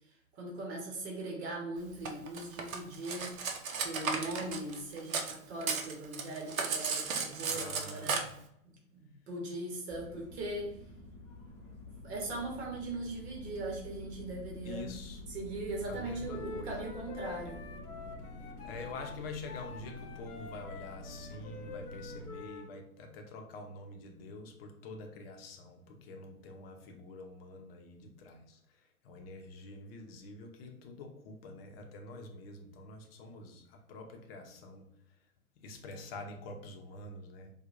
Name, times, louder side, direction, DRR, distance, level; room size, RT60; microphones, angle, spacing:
voice 1, 0.1-3.3 3.8-8.2 8.6-10.8 11.9-14.9 15.3-17.6, right 2 dB, 45° right, -1 dB, 1.3 m, -40 dB
Cutlery silverware, 2.0-5.3 5.6-8.2, right 5 dB, 65° right, 0.8 m, -34 dB
voice 2, 7.5-8.4 14.6-15.2 15.9-16.9 18.6-34.9 35.6-37.5, left 2 dB, 40° left, 4 dB, 0.8 m, -47 dB
sound 1, 9.9-22.3, left 1 dB, 5° left, 0.6 m, -48 dB
Wind instrument woodwind instrument, 16.2-22.7, left 5 dB, 90° left, 0.9 m, -48 dB
4.4 x 2.4 x 2.5 m, 0.70 s
hypercardioid pair, 120°, 45 cm